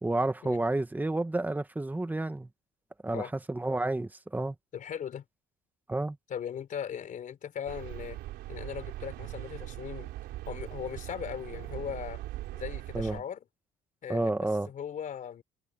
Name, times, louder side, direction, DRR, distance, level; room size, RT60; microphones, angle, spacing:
voice 1, 0.0-2.5 3.0-4.5 5.9-6.2 12.9-13.2 14.1-14.7, right 2 dB, 10° right, 1.9 m, -30 dB
voice 2, 4.7-5.2 6.3-8.2 8.5-10.1 10.5-12.2 12.5-13.4 14.0-15.4, left 8 dB, 50° left, 4.4 m, -38 dB
sound 1, 7.7-13.2, right 16 dB, 85° right, 3.7 m, -40 dB
cardioid pair, 110°, 17 cm